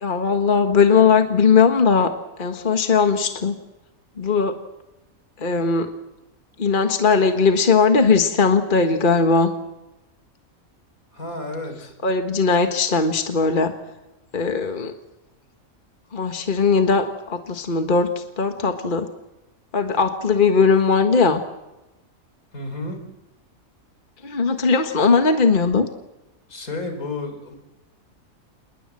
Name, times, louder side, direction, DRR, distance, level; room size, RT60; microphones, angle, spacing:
voice 1, 0.0-2.1 2.4-3.6 4.2-4.6 5.4-5.9 6.6-9.5 12.0-13.7 14.3-14.9 16.1-19.1 19.7-21.4 24.2-25.9, left 5 dB, 35° left, 6 dB, 1.7 m, -19 dB
voice 2, 11.1-11.9 22.5-23.0 26.5-27.6, left 2 dB, 80° left, 5 dB, 5.1 m, -31 dB
28.0 x 21.5 x 7.6 m, 1.0 s
omnidirectional pair, 1.5 m